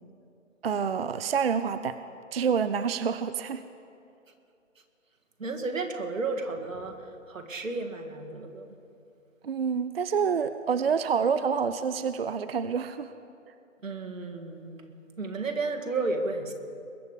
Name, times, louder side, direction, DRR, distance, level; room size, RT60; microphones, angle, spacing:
voice 1, 0.6-2.0 2.3-3.6 9.4-13.1, right 6 dB, 50° right, 12 dB, 0.4 m, -27 dB
voice 2, 5.4-8.7 13.8-14.9 15.2-16.5, right 3 dB, 90° right, 4 dB, 2.0 m, -33 dB
21.5 x 8.2 x 5.1 m, 2.5 s
hypercardioid pair, 165°, 38 cm